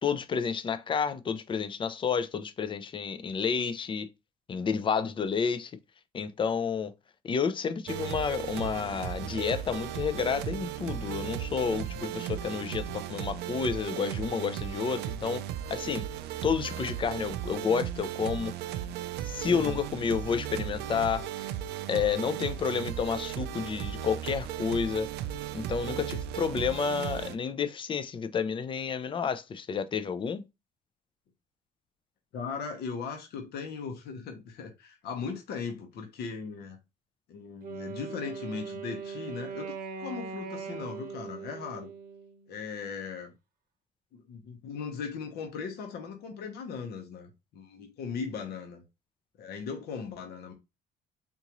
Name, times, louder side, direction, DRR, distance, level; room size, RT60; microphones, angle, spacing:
voice 1, 0.0-4.1 4.5-5.7 6.1-6.9 7.2-15.4 15.7-16.1 16.4-18.6 19.2-21.5 21.9-25.1 25.5-30.4, left 6 dB, 30° left, 0.4 m, -30 dB
sound 1, 7.9-27.4, right 11 dB, 80° right, 0.4 m, -36 dB
voice 2, 19.5-19.8 32.3-36.8 37.3-39.7 40.0-41.9 42.5-43.3 44.1-48.8 49.4-50.5, left 5 dB, 70° left, 1.0 m, -38 dB
Wind instrument woodwind instrument, 37.6-42.7, right 5 dB, 55° right, 0.8 m, -40 dB
3.7 x 2.6 x 2.9 m
cardioid pair, 110°, 17 cm